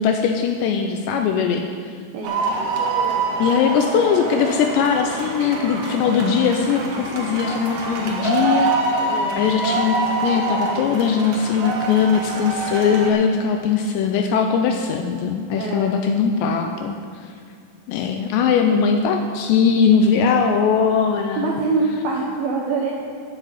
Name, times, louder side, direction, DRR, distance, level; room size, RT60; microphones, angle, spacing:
voice 1, 0.0-1.6 3.4-10.0 10.2-16.9 17.9-21.6, left 6 dB, 85° left, 4 dB, 2.6 m, -20 dB
sound 1, 2.2-13.1, right 3 dB, 60° right, 2.7 m, -25 dB
voice 2, 9.1-9.4 15.5-15.9 21.4-22.9, right 4 dB, 80° right, -1 dB, 2.2 m, -24 dB
11.0 x 7.7 x 8.0 m, 2.1 s
omnidirectional pair, 5.6 m